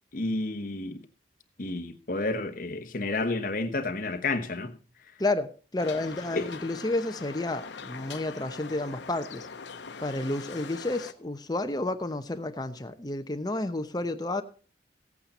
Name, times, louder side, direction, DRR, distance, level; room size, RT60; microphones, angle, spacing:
voice 1, 0.1-1.0 1.6-4.8 6.3-6.5, left 2 dB, 50° left, 1.1 m, -30 dB
voice 2, 5.2-9.5 10.0-14.4, left 2 dB, 25° left, 0.8 m, -31 dB
sound 1, 5.8-11.1, left 5 dB, 90° left, 0.8 m, -42 dB
16.0 x 8.6 x 4.2 m
head